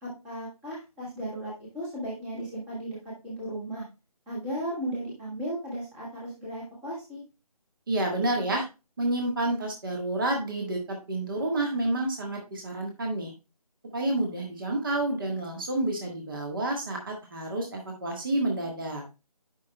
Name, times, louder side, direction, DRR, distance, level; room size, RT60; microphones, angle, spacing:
voice 1, 0.0-3.8 4.3-7.2, right 1 dB, 5° right, -7 dB, 1.2 m, -35 dB
voice 2, 7.9-8.6 9.0-13.3 13.9-19.0, right 1 dB, 35° right, 1 dB, 1.5 m, -29 dB
10.0 x 5.7 x 2.2 m, 0.28 s
figure-of-eight pair, 155°, 20 cm